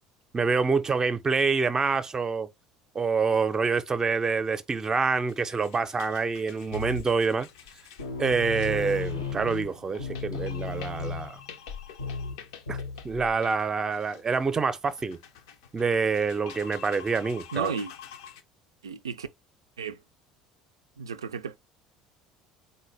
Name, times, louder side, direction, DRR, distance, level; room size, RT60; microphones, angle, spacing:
voice 1, 0.3-2.5 2.9-7.5 8.2-11.4 12.7-12.8 13.0-15.2 15.7-17.7, right 4 dB, 25° right, 0.5 m, -26 dB
sound 1, 4.8-18.4, left 8 dB, 70° left, 0.5 m, -48 dB
sound 2, 6.7-7.3 7.7-7.8 8.0-13.3, left 4 dB, 85° left, 0.8 m, -35 dB
voice 2, 17.5-17.9 18.8-19.3 19.8-20.0 21.0-21.6, right 6 dB, 85° right, 0.3 m, -33 dB
3.9 x 2.1 x 3.3 m
figure-of-eight pair, 65°, 2 cm